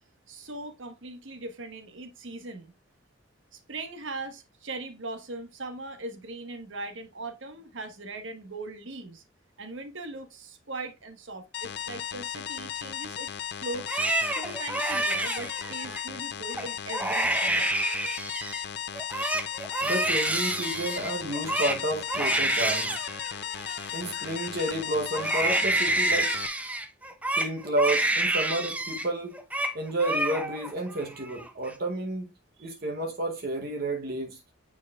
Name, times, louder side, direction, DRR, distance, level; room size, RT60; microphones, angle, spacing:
voice 1, 0.3-2.7 3.5-9.2 9.6-13.3 13.6-14.0 14.3-17.7 32.6-32.7, right 2 dB, 70° right, 1.3 m, -40 dB
sound 1, 11.5-26.5, left 9 dB, 50° left, 0.4 m, -36 dB
Crying sobbing, 13.7-16.0 16.5-16.7 16.9-18.6 18.9-24.7 25.1-29.1 29.3-29.7 30.0-30.7 31.1-31.7, right 1 dB, 5° right, 0.5 m, -28 dB
voice 2, 19.8-22.9 23.9-26.4 27.4-29.4 29.7-32.3 32.6-34.4, right 1 dB, 50° right, 0.9 m, -31 dB
9.1 x 4.8 x 2.3 m
head